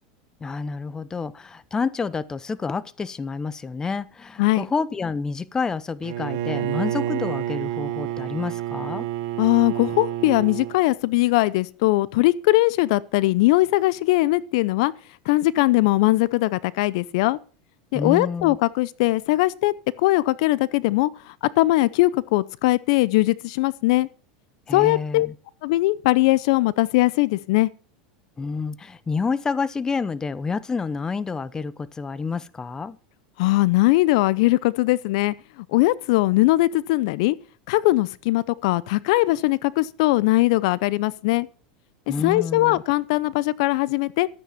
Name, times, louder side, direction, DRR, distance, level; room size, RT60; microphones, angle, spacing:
voice 1, 0.4-9.1 17.9-18.6 24.7-25.3 28.4-33.0 42.1-42.8, left 5 dB, 20° left, 0.8 m, -28 dB
Bowed string instrument, 6.0-10.8, right 12 dB, 65° right, 1.6 m, -29 dB
voice 2, 9.4-14.9 15.3-17.4 17.9-24.1 24.7-25.3 25.6-27.7 33.4-35.3 35.7-37.4 37.7-41.5 42.1-44.3, left 19 dB, 65° left, 0.6 m, -20 dB
13.0 x 9.2 x 5.8 m
hypercardioid pair, 105°, 4 cm